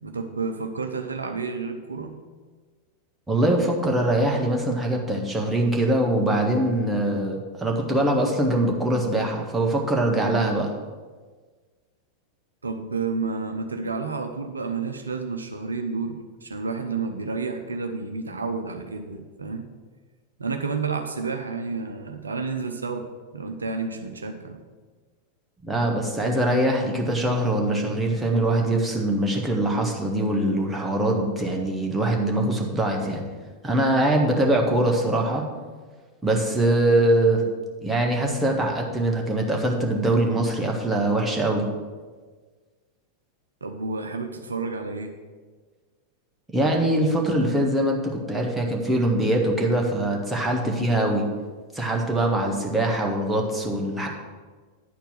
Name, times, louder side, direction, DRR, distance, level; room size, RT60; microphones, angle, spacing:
voice 1, 0.0-2.2 12.6-19.6 20.4-24.6 43.6-45.1, right 4 dB, 75° right, 5 dB, 0.7 m, -30 dB
voice 2, 3.3-10.7 25.6-33.2 33.6-35.5 36.2-37.4 37.8-41.7 46.5-51.2 51.7-54.1, right 1 dB, 5° right, -1 dB, 1.6 m, -23 dB
10.0 x 4.5 x 7.8 m, 1.4 s
figure-of-eight pair, 90°, 0 cm